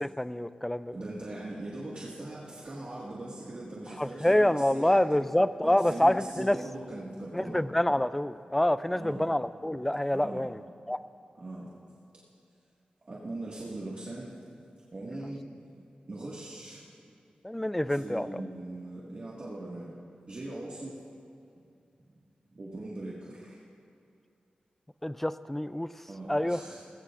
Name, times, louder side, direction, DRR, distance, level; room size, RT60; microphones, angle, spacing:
voice 1, 0.0-0.9 4.0-6.6 7.3-10.6 10.9-11.0 17.4-18.3 25.0-25.9 26.3-26.6, left 1 dB, 10° left, 14 dB, 0.3 m, -27 dB
voice 2, 0.9-5.2 5.6-7.6 8.9-9.3 10.1-10.5 11.4-11.7 13.1-14.3 14.9-15.7 16.1-16.8 17.9-19.9 20.3-21.0 22.6-23.6 26.1-26.8, right 2 dB, 40° right, -7 dB, 1.8 m, -40 dB
20.0 x 16.5 x 2.5 m, 2.5 s
wide cardioid pair, 115°, 3 cm